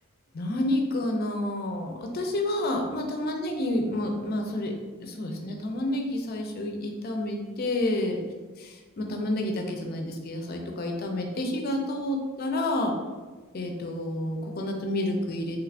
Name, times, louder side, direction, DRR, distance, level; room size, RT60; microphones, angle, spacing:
voice 1, 0.3-4.7 5.0-8.2 8.6-12.9 13.5-15.6, left 1 dB, 45° left, 2 dB, 0.4 m, -29 dB
3.1 x 2.4 x 3.3 m, 1.3 s
head